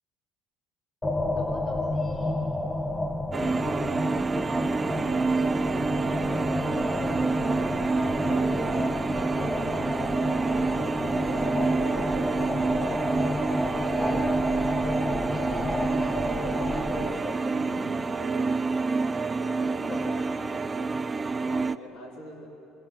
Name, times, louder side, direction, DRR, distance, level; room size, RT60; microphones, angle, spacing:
sound 1, 1.0-17.1, left 1 dB, 15° left, 1.8 m, -31 dB
voice 1, 1.4-2.4 5.1-9.6 13.7-14.3 15.2-17.7 18.2-18.6 19.7-20.5 20.8-21.0, left 4 dB, 45° left, -3 dB, 4.8 m, -42 dB
sound 2, 3.3-21.8, right 3 dB, 25° right, 0.9 m, -27 dB
voice 2, 11.2-11.7 17.6-17.9 19.9-20.2 21.5-22.5, left 1 dB, 90° left, -3 dB, 4.7 m, -44 dB
27.5 x 25.5 x 7.8 m, 2.8 s
supercardioid pair, 85°, 0 cm